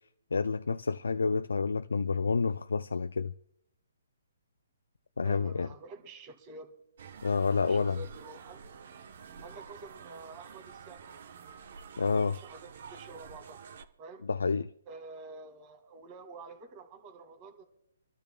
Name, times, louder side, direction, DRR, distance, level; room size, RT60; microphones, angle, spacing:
voice 1, 0.3-3.3 5.2-5.7 7.2-8.0 12.0-12.4 14.3-14.7, left 4 dB, 85° left, 0.4 m, -29 dB
voice 2, 5.2-6.7 7.6-8.7 9.4-11.0 12.0-13.6 14.0-14.3 14.9-17.7, right 3 dB, 30° right, 1.8 m, -48 dB
sound 1, 7.0-13.9, right 6 dB, 55° right, 0.9 m, -49 dB
27.0 x 12.5 x 2.2 m
hypercardioid pair, 150°, 0 cm